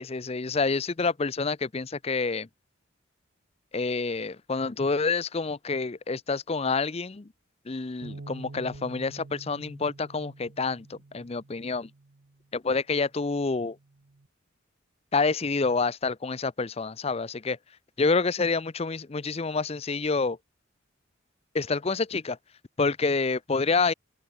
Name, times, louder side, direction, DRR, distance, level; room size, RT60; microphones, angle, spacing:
voice 1, 0.0-2.5 3.7-7.3 7.7-11.9 12.5-13.8 15.1-17.6 18.0-20.4 21.5-22.4 22.8-23.9, left 4 dB, 30° left, 0.6 m, -28 dB
Bass guitar, 8.0-12.4 13.1-14.3, right 2 dB, 65° right, 0.9 m, -47 dB
head